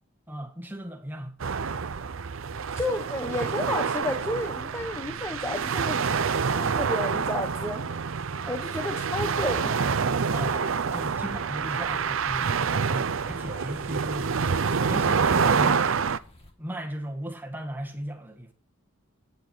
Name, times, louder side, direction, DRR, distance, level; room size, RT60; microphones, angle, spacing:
voice 1, 0.3-1.3 8.4-8.6 10.3-14.4 14.9-16.0 16.6-18.5, right 1 dB, 10° right, 1.8 m, -36 dB
sound 1, 1.4-16.2, right 5 dB, 65° right, 0.6 m, -27 dB
voice 2, 2.7-7.9 8.5-9.8, left 1 dB, 15° left, 1.0 m, -32 dB
sound 2, 10.7-16.5, left 1 dB, 30° left, 1.9 m, -51 dB
10.5 x 9.7 x 4.6 m
head